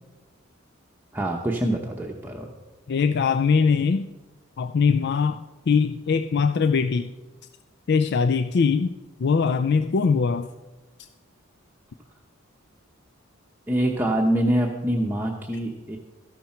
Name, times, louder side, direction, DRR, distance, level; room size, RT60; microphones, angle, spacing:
voice 1, 1.1-2.5 13.7-16.0, right 1 dB, 10° right, 0 dB, 0.8 m, -25 dB
voice 2, 2.9-4.1 4.6-7.1 7.9-8.9 9.2-10.5, left 5 dB, 50° left, 9 dB, 0.4 m, -21 dB
13.5 x 11.5 x 4.4 m, 1.2 s
head